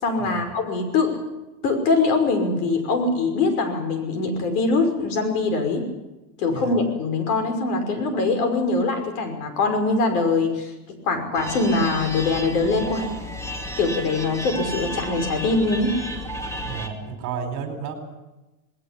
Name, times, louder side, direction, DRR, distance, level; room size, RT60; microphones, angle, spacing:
voice 1, 0.0-1.2 1.6-5.9 6.4-10.7 11.0-13.1 13.8-16.0, left 3 dB, 65° left, 6 dB, 5.8 m, -23 dB
sound 1, 11.3-16.9, equal, 5° left, 2.2 m, -32 dB
voice 2, 16.6-17.9, right 7 dB, 35° right, 6 dB, 4.4 m, -32 dB
20.0 x 18.5 x 8.6 m, 1.0 s
supercardioid pair, 150°, 48 cm